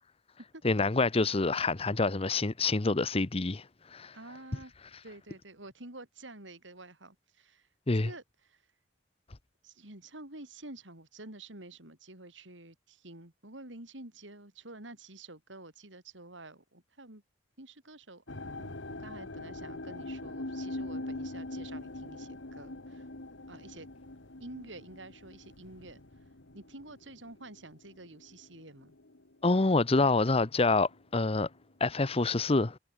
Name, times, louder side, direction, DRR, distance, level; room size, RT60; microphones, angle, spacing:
voice 1, 0.6-3.6 3.9-4.1 7.9-8.1 29.4-31.5 31.8-32.8, left 3 dB, 30° left, 0.8 m, -27 dB
voice 2, 4.1-4.7 5.0-7.7 7.9-8.6 9.6-17.2 17.6-18.2 18.6-23.1 23.5-23.9 24.4-26.0 26.5-29.0, right 2 dB, 85° right, 5.7 m, -49 dB
sound 1, 18.3-29.4 29.7-30.3 30.9-31.0, left 2 dB, 85° left, 2.1 m, -43 dB
head